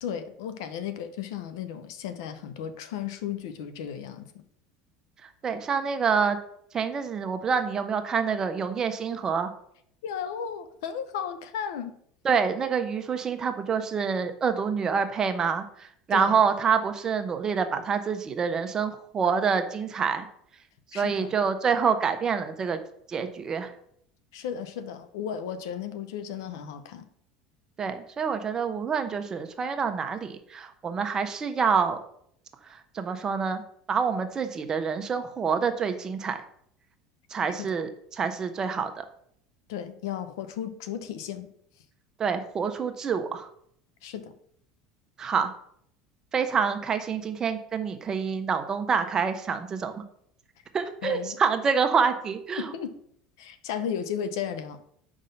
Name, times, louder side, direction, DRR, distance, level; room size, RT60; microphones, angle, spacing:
voice 1, 0.0-4.4 10.0-12.0 16.1-16.4 20.9-21.3 24.3-27.1 37.6-37.9 39.7-41.5 44.0-44.3 51.0-51.4 52.6-53.0 53.4-54.8, left 8 dB, 85° left, 12 dB, 0.6 m, -34 dB
voice 2, 5.4-6.4 6.7-9.5 12.2-20.3 20.9-22.8 23.1-23.7 27.8-32.0 32.9-33.6 33.9-36.4 37.3-39.0 42.2-43.5 45.2-45.5 46.3-50.0 50.7-52.7, right 6 dB, 30° right, 8 dB, 0.8 m, -27 dB
5.2 x 3.6 x 5.6 m, 0.67 s
supercardioid pair, 105°, 2 cm